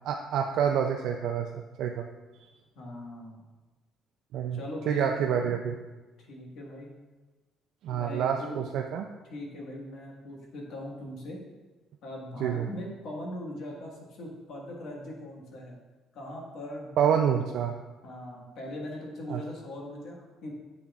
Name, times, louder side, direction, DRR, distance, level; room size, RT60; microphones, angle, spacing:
voice 1, 0.0-2.1 4.3-4.6 4.9-5.7 7.8-9.1 12.4-12.7 17.0-17.7 19.3-19.4, right 8 dB, 65° right, 4 dB, 0.4 m, -27 dB
voice 2, 2.7-3.5 4.5-5.1 5.4-5.5 6.3-6.9 7.9-8.6 9.3-11.4 12.0-15.8 16.1-17.4 18.0-20.5, left 1 dB, 60° left, -1 dB, 1.5 m, -40 dB
7.8 x 7.0 x 2.4 m, 1.2 s
cardioid pair, 165°, 0 cm